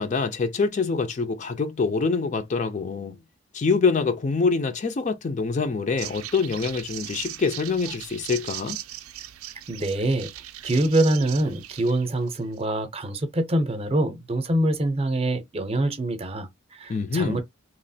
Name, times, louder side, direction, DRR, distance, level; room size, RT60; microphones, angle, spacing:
voice 1, 0.0-3.2 3.5-8.8 16.9-17.4, left 4 dB, 35° left, 0.3 m, -25 dB
sound 1, 6.0-12.6, right 13 dB, 90° right, 0.4 m, -38 dB
voice 2, 9.7-10.3 10.6-17.4, right 1 dB, 30° right, 0.6 m, -25 dB
3.0 x 2.4 x 2.7 m
head